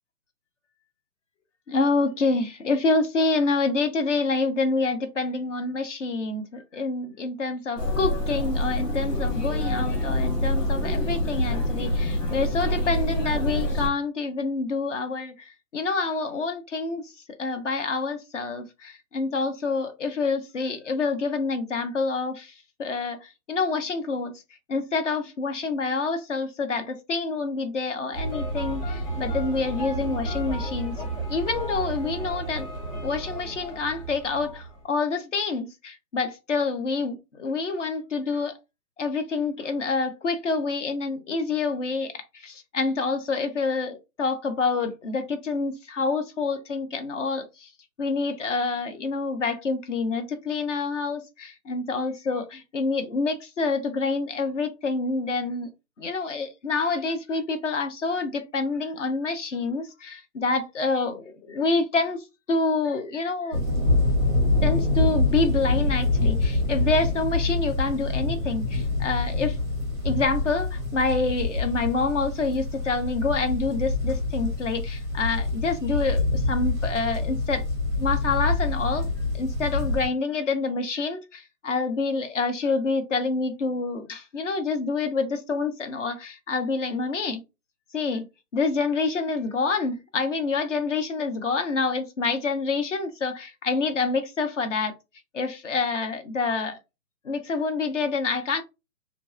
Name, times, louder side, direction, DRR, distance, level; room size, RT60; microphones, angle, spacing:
voice 1, 1.7-17.1 17.4-22.5 22.8-24.4 24.7-30.9 31.3-32.7 33.0-38.5 39.0-42.1 42.4-47.7 48.0-55.7 56.0-62.2 62.5-63.6 64.6-69.6 70.0-77.6 78.0-79.1 79.3-87.4 87.9-88.2 88.5-94.9 95.3-96.8 97.2-98.6, left 4 dB, 50° left, 0.7 m, -27 dB
sound 1, 7.8-13.9, left 1 dB, 80° left, 1.3 m, -26 dB
sound 2, 28.1-34.8, right 2 dB, 10° left, 1.2 m, -32 dB
sound 3, 63.5-80.1, left 2 dB, 20° right, 0.5 m, -25 dB
2.6 x 2.4 x 2.5 m
hypercardioid pair, 150°, 47 cm